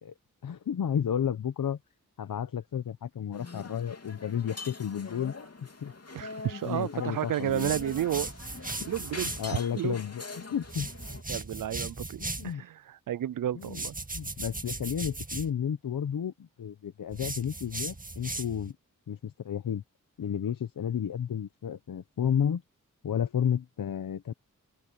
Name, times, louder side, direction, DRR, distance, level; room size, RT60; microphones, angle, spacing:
voice 1, 0.4-1.8 2.2-5.3 5.8-5.9 6.6-7.7 9.2-10.9 12.2-12.6 13.5-13.8 14.1-18.7 19.1-19.8 20.2-22.6 23.0-24.3, left 8 dB, 80° left, 0.9 m, -32 dB
sound 1, 3.3-11.2, left 3 dB, 50° left, 3.2 m, -44 dB
voice 2, 6.1-10.0 11.3-13.9, right 11 dB, 70° right, 0.5 m, -32 dB
sound 2, 7.5-9.5 10.6-12.5 13.6-15.5 17.1-18.7, right 2 dB, 25° right, 2.1 m, -37 dB
cardioid pair, 45°, 33 cm